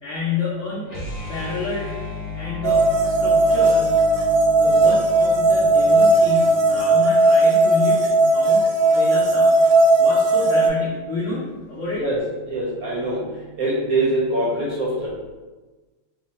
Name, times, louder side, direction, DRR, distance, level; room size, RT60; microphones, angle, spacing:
voice 1, 0.0-1.0 1.3-2.0 2.3-4.0 4.6-9.6 10.0-12.0, left 4 dB, 85° left, -7 dB, 0.6 m, -29 dB
sound 1, 0.8-6.9, left 3 dB, 40° left, 0.9 m, -34 dB
sound 2, 2.6-10.7, right 2 dB, 80° right, 1.5 m, -17 dB
voice 2, 12.5-13.2 13.6-15.1, right 1 dB, 65° right, -6 dB, 0.9 m, -23 dB
3.4 x 2.1 x 4.0 m, 1.2 s
omnidirectional pair, 2.3 m